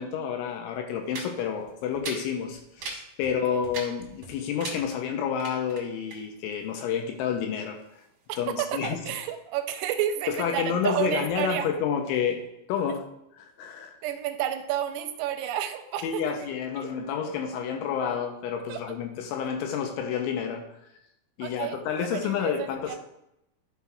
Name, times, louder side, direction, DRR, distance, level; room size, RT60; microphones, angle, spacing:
voice 1, 0.0-7.8 8.4-9.0 10.3-12.4 12.7-13.1 13.4-13.9 16.0-20.6 21.4-23.0, left 7 dB, 85° left, 4 dB, 2.9 m, -29 dB
sound 1, 1.0-9.5, right 4 dB, 60° right, 2.2 m, -42 dB
voice 2, 3.3-3.6 8.3-11.7 14.0-16.9 18.7-18.8 21.4-23.0, right 11 dB, 90° right, 7 dB, 3.2 m, -31 dB
11.0 x 6.0 x 2.4 m, 0.83 s
omnidirectional pair, 5.8 m